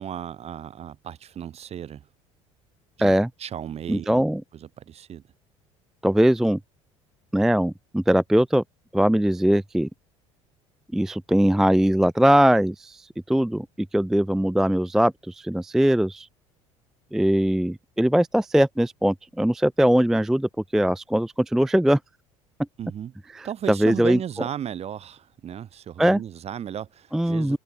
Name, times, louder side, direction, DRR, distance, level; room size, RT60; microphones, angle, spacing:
voice 1, 0.0-2.1 3.0-3.1 3.4-4.2 4.5-5.2 22.8-23.1 23.4-27.6, right 9 dB, 40° right, 1.2 m, -35 dB
voice 2, 3.9-4.4 6.0-6.6 7.3-8.6 8.9-9.9 10.9-13.7 13.9-16.3 17.1-22.0 23.3-24.2 26.0-26.2 27.1-27.6, equal, 5° right, 0.3 m, -21 dB
hypercardioid pair, 65°, 16 cm